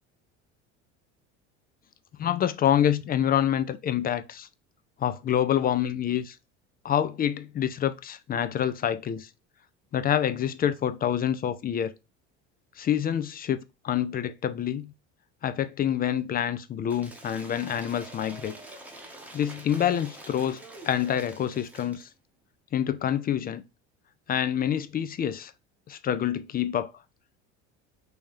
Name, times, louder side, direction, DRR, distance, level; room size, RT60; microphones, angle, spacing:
voice 1, 2.2-4.5 5.0-6.4 6.8-9.3 9.9-11.9 12.8-13.6 13.8-14.9 15.4-18.6 19.3-22.1 22.7-23.6 24.3-25.5 25.9-26.9, left 10 dB, 25° left, 0.3 m, -27 dB
Cheering / Applause / Crowd, 16.9-22.1, right 1 dB, 5° right, 0.9 m, -46 dB
3.3 x 2.7 x 3.6 m
supercardioid pair, 85°, 34 cm